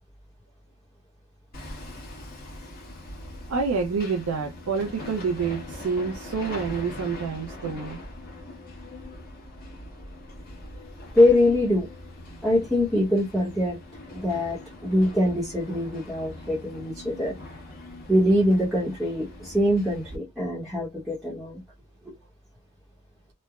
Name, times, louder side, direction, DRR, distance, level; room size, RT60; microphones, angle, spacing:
Hammer, 1.5-20.2, left 1 dB, 45° left, 1.1 m, -42 dB
voice 1, 3.5-8.0, right 5 dB, 90° right, 0.5 m, -28 dB
voice 2, 11.1-11.9 12.4-13.8 14.1-17.3 18.1-21.6, left 1 dB, ahead, 0.8 m, -23 dB
3.1 x 2.0 x 2.3 m
head